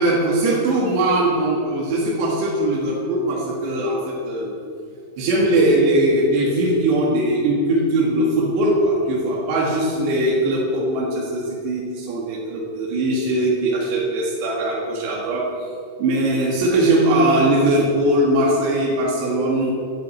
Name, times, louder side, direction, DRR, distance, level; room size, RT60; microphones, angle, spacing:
voice 1, 0.0-4.5 5.2-15.7 16.0-19.7, right 1 dB, 75° right, -3 dB, 3.9 m, -20 dB
11.0 x 9.1 x 8.7 m, 2.4 s
omnidirectional pair, 5.0 m